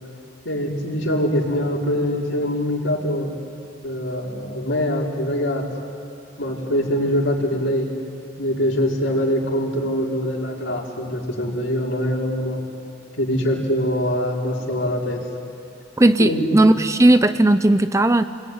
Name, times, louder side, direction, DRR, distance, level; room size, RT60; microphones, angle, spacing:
voice 1, 0.4-3.3 3.8-5.6 6.4-7.9 8.4-12.6 13.2-15.2 16.2-16.5, equal, 75° left, -2 dB, 4.8 m, -23 dB
voice 2, 16.0-18.2, right 1 dB, 15° right, 11 dB, 0.6 m, -16 dB
29.5 x 21.0 x 9.6 m, 2.4 s
head